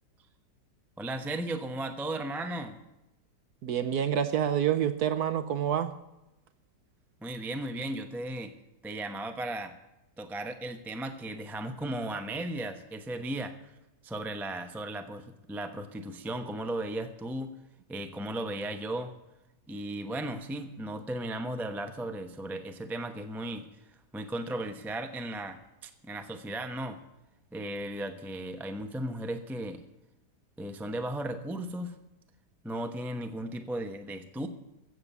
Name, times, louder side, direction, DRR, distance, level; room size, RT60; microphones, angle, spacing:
voice 1, 1.0-2.8 7.2-8.5 8.8-9.8 10.2-13.6 14.0-17.5 17.9-19.1 19.7-27.0 27.5-29.8 30.6-32.0 32.6-34.5, right 1 dB, ahead, 7 dB, 0.6 m, -36 dB
voice 2, 3.6-5.9, right 9 dB, 70° right, 11 dB, 1.2 m, -27 dB
15.5 x 7.5 x 8.1 m, 0.94 s
omnidirectional pair, 1.9 m